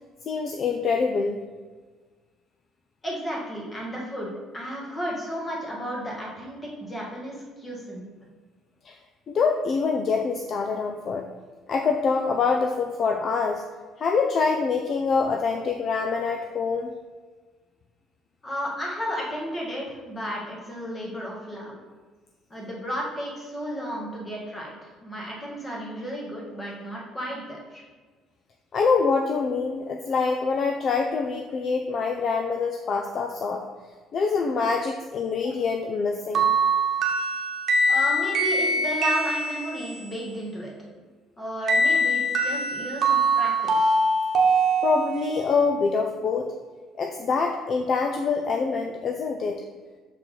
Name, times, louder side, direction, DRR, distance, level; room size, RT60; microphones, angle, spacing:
voice 1, 0.3-1.5 8.8-9.0 9.3-11.3 11.7-13.6 14.0-16.9 28.7-33.6 34.1-36.6 44.8-46.5 47.0-49.6, left 4 dB, 45° left, 3 dB, 0.5 m, -25 dB
voice 2, 3.0-8.1 18.4-21.8 22.5-27.8 37.9-40.7 41.4-44.0, equal, 20° left, -3 dB, 1.8 m, -33 dB
sound 1, 36.3-40.1 41.7-45.4, right 2 dB, 50° right, 1.1 m, -23 dB
6.6 x 4.5 x 3.8 m, 1.4 s
cardioid pair, 130°, 0 cm